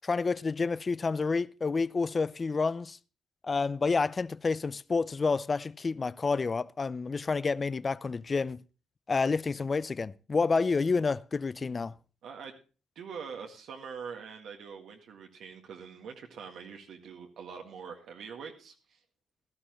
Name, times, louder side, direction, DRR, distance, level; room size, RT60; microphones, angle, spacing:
voice 1, 0.0-3.0 3.4-8.6 9.1-11.9, left 4 dB, 30° left, 0.5 m, -29 dB
voice 2, 12.2-12.5 13.0-19.0, right 6 dB, 75° right, 1.8 m, -44 dB
15.5 x 12.5 x 3.0 m
cardioid pair, 90°, 0 cm